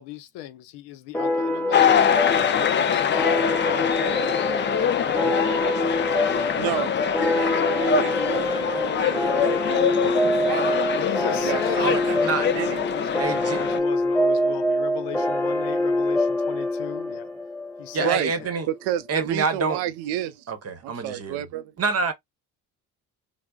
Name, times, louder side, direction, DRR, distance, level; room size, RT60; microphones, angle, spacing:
voice 1, 0.0-5.6 11.0-17.3 17.8-18.5, left 12 dB, 80° left, 0.6 m, -36 dB
sound 1, 1.1-18.2, left 1 dB, 5° left, 0.8 m, -25 dB
sound 2, 1.7-13.8, left 8 dB, 30° left, 0.4 m, -24 dB
voice 2, 6.6-6.9 7.2-10.1 10.4-10.8 11.4-12.3 12.5-12.8 18.0-18.3 18.7-20.5 20.8-21.7, right 12 dB, 80° right, 0.5 m, -30 dB
voice 3, 13.2-13.6 17.9-18.7 19.1-19.8 20.5-21.4 21.8-22.1, right 4 dB, 35° right, 0.9 m, -26 dB
3.4 x 2.0 x 2.2 m
supercardioid pair, 80°, 40 cm